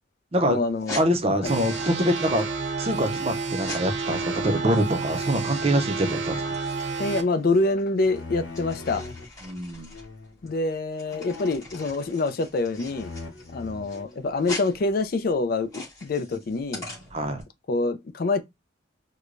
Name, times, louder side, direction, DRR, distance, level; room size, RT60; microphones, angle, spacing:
voice 1, 0.4-1.0 1.4-1.5 7.0-9.0 10.4-13.1 13.5-16.8 17.7-18.4, left 3 dB, 50° left, 0.4 m, -26 dB
sound 1, 0.7-17.4, left 2 dB, 20° left, 2.0 m, -42 dB
voice 2, 0.9-2.5 2.8-6.4 9.4-9.9 17.1-17.4, equal, 30° right, 0.6 m, -25 dB
sound 2, 1.4-7.2, right 4 dB, 80° right, 0.7 m, -30 dB
sound 3, 4.0-9.3 9.9-10.4 11.1-12.5 12.8-14.8, left 3 dB, 80° left, 0.9 m, -42 dB
4.7 x 2.2 x 2.5 m
head